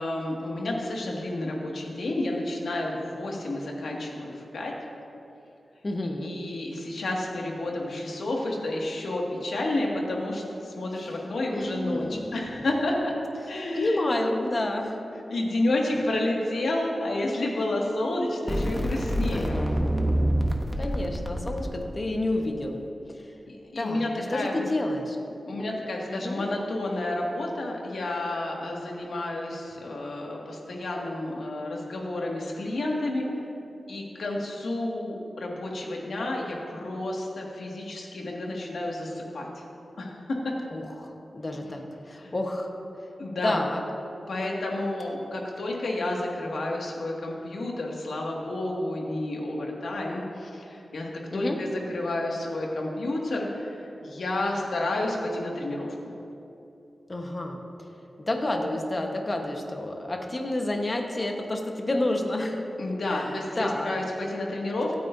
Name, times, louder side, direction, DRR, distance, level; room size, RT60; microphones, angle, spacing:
voice 1, 0.0-4.7 6.2-13.1 13.5-14.0 15.3-19.6 23.5-24.6 25.5-33.3 33.9-39.6 40.0-40.2 40.4-40.5 42.2-42.3 43.2-43.6 44.3-56.1 62.8-65.0, left 1 dB, 85° left, -2 dB, 2.0 m, -30 dB
voice 2, 5.8-6.3 11.5-12.3 13.4-15.0 19.3-19.5 20.8-22.8 23.1-23.3 23.8-25.2 26.1-26.5 40.7-42.7 43.4-43.8 51.3-51.6 57.1-57.9 58.2-62.6 63.1-63.9, left 1 dB, 30° left, 2 dB, 1.2 m, -29 dB
sound 1, 18.5-21.6, equal, 5° left, 0.9 m, -26 dB
25.0 x 9.2 x 2.7 m, 2.8 s
wide cardioid pair, 145°, 0 cm